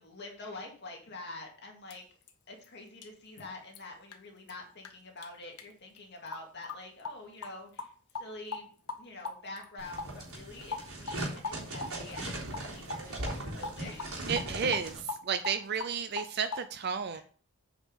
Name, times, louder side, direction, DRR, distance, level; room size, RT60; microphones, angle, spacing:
voice 1, 0.0-2.0 2.5-8.7 9.0-14.3 17.1-17.2, left 2 dB, 50° left, 1 dB, 2.2 m, -46 dB
sound 1, 1.9-2.0 2.3-2.4 2.6-2.7 3.0-3.1 3.4-3.5 3.7-3.8 4.1-4.2 4.5-4.6 4.8-4.9 5.2-5.3 5.6-5.7 6.0-6.1 6.3-6.4 6.7-6.8 7.0-7.2 7.4-7.5 7.8-8.3 8.5-8.6 8.9-9.0 9.2-9.7 10.0-10.5 10.7-11.2 11.4-12.2 12.5-13.0 13.3-13.4 13.6-13.7 14.0-15.9 16.2-16.6, left 3 dB, 90° left, 1.2 m, -38 dB
sound 2, 9.8-15.0, right 1 dB, 80° right, 3.4 m, -39 dB
voice 2, 14.3-15.0 15.2-17.2, right 6 dB, 45° right, 10 dB, 0.5 m, -32 dB
8.6 x 5.2 x 5.2 m, 0.42 s
head